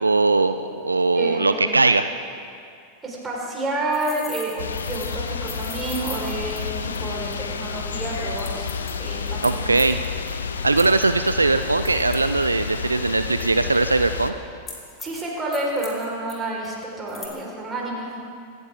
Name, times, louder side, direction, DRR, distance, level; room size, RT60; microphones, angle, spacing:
voice 1, 0.0-2.1 9.4-10.0 10.6-14.4, right 3 dB, 80° right, 10 dB, 0.4 m, -20 dB
voice 2, 1.1-1.8 3.0-8.7 9.0-9.7 15.0-18.1, right 2 dB, 15° right, -3 dB, 4.6 m, -29 dB
sound 1, 3.9-7.3 7.6-7.7 8.4-10.3 10.8-12.7 13.4-13.8 14.7-15.2 15.5-16.3 16.6-16.7 17.1-17.3, left 4 dB, 20° left, 3.2 m, -40 dB
sound 2, 4.6-14.3, left 6 dB, 70° left, 0.9 m, -30 dB
26.0 x 13.5 x 3.7 m, 2.4 s
figure-of-eight pair, 90°, 0 cm